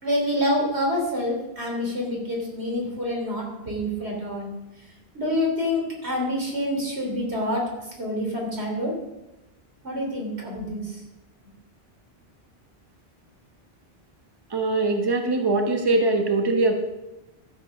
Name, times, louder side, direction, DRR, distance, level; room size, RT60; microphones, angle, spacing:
voice 1, 0.0-4.5 5.1-7.6 8.0-8.9 9.8-11.0, left 1 dB, 85° right, -1 dB, 3.7 m, -27 dB
voice 2, 14.5-16.7, right 2 dB, 25° right, 3 dB, 1.2 m, -22 dB
13.0 x 8.0 x 5.9 m, 0.98 s
omnidirectional pair, 1.1 m